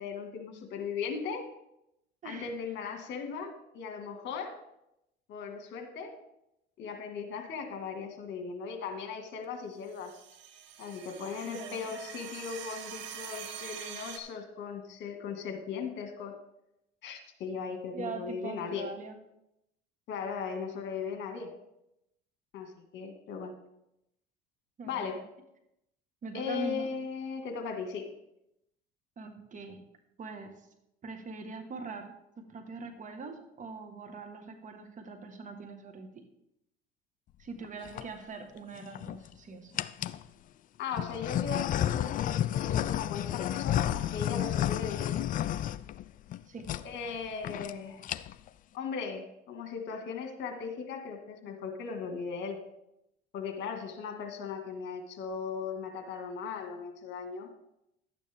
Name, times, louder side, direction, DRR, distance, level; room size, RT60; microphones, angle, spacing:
voice 1, 0.0-1.5 2.2-4.5 5.3-6.1 6.8-10.1 10.8-16.4 17.0-18.9 20.1-21.5 22.5-23.5 24.9-25.2 26.3-28.1 40.8-45.2 46.8-48.0 48.7-52.6 53.3-57.5, left 6 dB, 60° left, 5 dB, 1.9 m, -38 dB
sound 1, 9.9-14.2, right 9 dB, 65° right, 1.2 m, -44 dB
voice 2, 11.4-11.9 17.9-19.2 24.8-25.2 26.2-26.9 29.2-29.8 30.2-30.6 31.0-36.2 37.4-39.7 46.5-46.7, right 3 dB, 40° right, 6 dB, 1.6 m, -42 dB
sound 2, 37.6-38.0 38.8-39.3 39.8-40.2 40.9-46.4 46.6-46.8 47.1-47.2 47.4-47.7 48.0-48.5, left 11 dB, 40° left, 0.4 m, -31 dB
11.5 x 9.0 x 3.5 m, 0.83 s
supercardioid pair, 100°, 21 cm